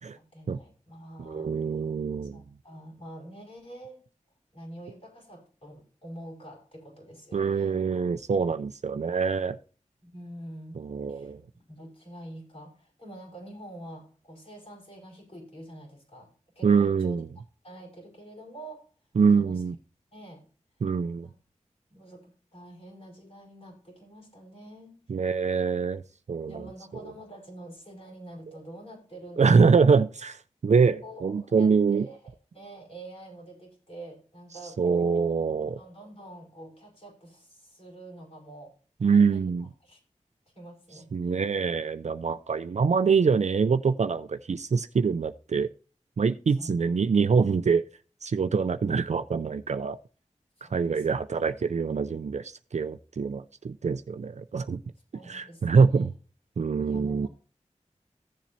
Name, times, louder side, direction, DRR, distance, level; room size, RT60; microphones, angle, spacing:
voice 1, 0.1-1.5 2.3-4.0 4.5-7.9 10.0-10.8 11.1-17.2 17.6-18.9 19.3-19.6 20.1-20.4 21.2-21.4 21.9-25.0 26.5-29.8 31.0-35.3 35.6-38.7 39.0-40.0 40.5-41.4 46.5-47.0 50.6-51.6 55.1-56.1 56.8-57.3, right 1 dB, 55° left, -3 dB, 4.8 m, -46 dB
voice 2, 1.2-2.4 7.3-9.6 10.8-11.4 16.6-17.2 19.2-19.8 20.8-21.3 25.1-26.0 26.3-26.6 29.4-32.1 34.8-35.8 39.0-39.7 41.1-45.7 46.2-47.8 48.2-50.0 50.6-54.8 55.3-56.1 56.6-57.3, right 5 dB, 65° right, 11 dB, 0.4 m, -24 dB
15.0 x 7.3 x 2.7 m, 0.38 s
wide cardioid pair, 70°, 13 cm